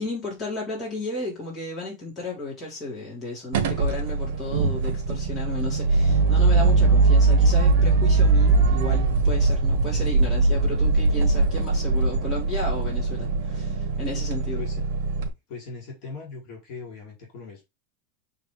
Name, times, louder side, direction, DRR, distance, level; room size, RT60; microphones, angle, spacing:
voice 1, 0.0-14.6, left 2 dB, 20° left, 4.5 m, -33 dB
sound 1, 3.5-15.3, right 3 dB, 70° right, 1.4 m, -21 dB
voice 2, 15.5-17.6, left 4 dB, 50° left, 4.2 m, -39 dB
7.1 x 4.3 x 3.7 m
supercardioid pair, 165°, 0 cm